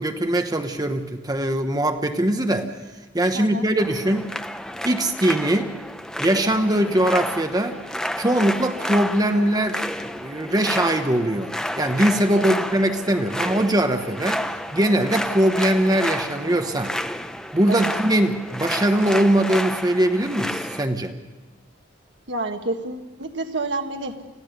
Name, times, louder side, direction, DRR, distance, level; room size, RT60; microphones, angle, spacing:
voice 1, 0.0-2.7 3.1-4.3 4.8-5.7 6.2-7.8 8.2-17.0 17.5-21.1, right 1 dB, 20° right, 6 dB, 1.0 m, -21 dB
voice 2, 3.3-3.7 6.8-7.1 12.3-12.6 17.7-17.9 22.3-24.4, right 2 dB, 70° right, 5 dB, 1.6 m, -30 dB
sound 1, 3.8-20.9, left 1 dB, 5° left, 0.6 m, -30 dB
25.5 x 16.0 x 6.7 m, 1.2 s
head